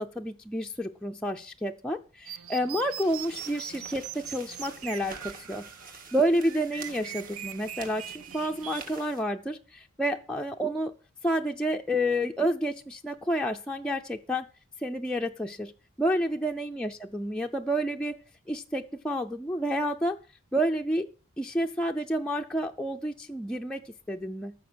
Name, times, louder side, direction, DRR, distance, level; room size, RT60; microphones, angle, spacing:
voice 1, 0.0-5.7 6.1-10.9 11.2-14.5 14.8-15.7 16.0-18.2 18.5-20.2 20.5-21.1 21.4-24.5, equal, 5° left, 1 dB, 0.5 m, -29 dB
sound 1, 2.2-8.8, right 10 dB, 80° right, 0.7 m, -42 dB
sound 2, 3.0-9.2, right 4 dB, 40° right, 1.8 m, -48 dB
14.5 x 6.4 x 6.2 m, 0.37 s
head